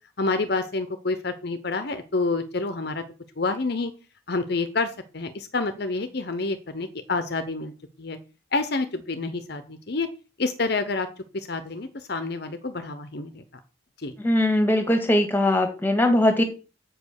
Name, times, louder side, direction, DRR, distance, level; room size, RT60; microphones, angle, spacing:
voice 1, 0.2-3.0 3.4-3.9 4.3-7.7 8.0-8.2 8.5-10.1 10.4-11.1 11.3-13.4 14.0-14.1, left 3 dB, 50° left, 10 dB, 0.8 m, -28 dB
voice 2, 14.2-16.4, left 1 dB, 10° left, 6 dB, 1.7 m, -20 dB
7.7 x 5.3 x 6.4 m, 0.34 s
head